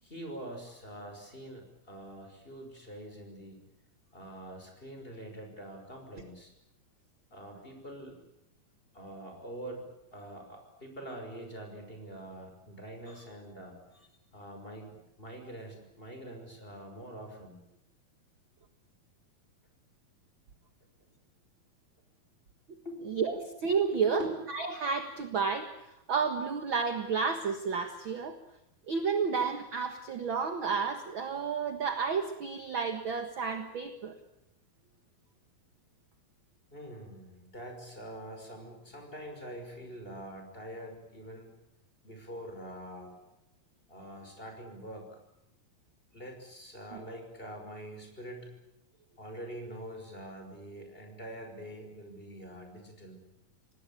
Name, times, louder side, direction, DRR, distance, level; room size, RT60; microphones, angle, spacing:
voice 1, 0.0-3.6 4.1-6.5 7.3-8.2 8.9-13.8 14.3-17.6 22.8-23.0 23.3-23.4 23.9-24.3 36.7-41.5 42.0-43.2 43.9-45.2 46.1-48.5 49.2-53.2, right 1 dB, 15° left, 4 dB, 5.6 m, -44 dB
voice 2, 23.1-24.2 24.5-28.4 28.9-34.2, right 5 dB, 50° right, 7 dB, 1.5 m, -31 dB
27.0 x 19.0 x 8.6 m, 0.85 s
omnidirectional pair, 4.4 m